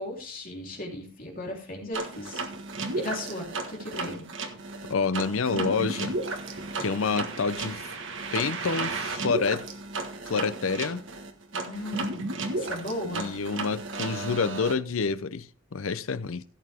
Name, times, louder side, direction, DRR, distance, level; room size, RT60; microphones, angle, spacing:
voice 1, 0.0-2.4 3.0-4.2 11.5-13.3, left 1 dB, 40° left, 3.4 m, -36 dB
sound 1, 1.9-14.7, right 3 dB, 60° right, 1.5 m, -34 dB
voice 2, 4.9-6.2 6.8-7.9 8.3-9.6 10.3-11.0 13.0-16.4, left 5 dB, 75° left, 0.6 m, -28 dB
16.0 x 6.8 x 3.5 m
head